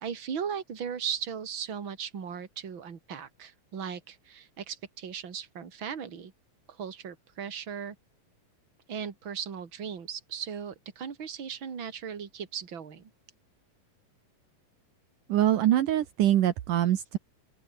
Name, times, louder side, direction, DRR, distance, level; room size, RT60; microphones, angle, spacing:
voice 1, 0.0-6.3 6.7-8.0 8.9-13.1, right 7 dB, 35° right, 3.1 m, -37 dB
voice 2, 15.3-17.2, right 12 dB, 70° right, 2.8 m, -24 dB
open air
omnidirectional pair, 4.0 m